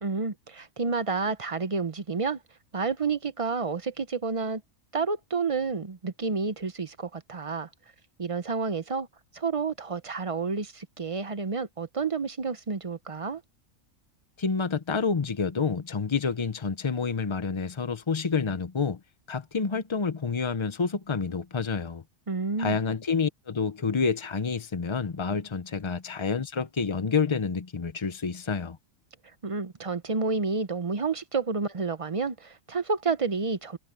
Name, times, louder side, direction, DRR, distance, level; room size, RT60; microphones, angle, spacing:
voice 1, 0.0-2.4 2.7-4.6 4.9-7.7 8.2-9.1 9.3-13.4 22.3-22.8 29.4-33.8, right 4 dB, 35° right, 0.6 m, -30 dB
voice 2, 14.4-19.0 19.3-22.0 22.6-28.8, left 5 dB, 35° left, 0.5 m, -28 dB
omnidirectional pair, 1.4 m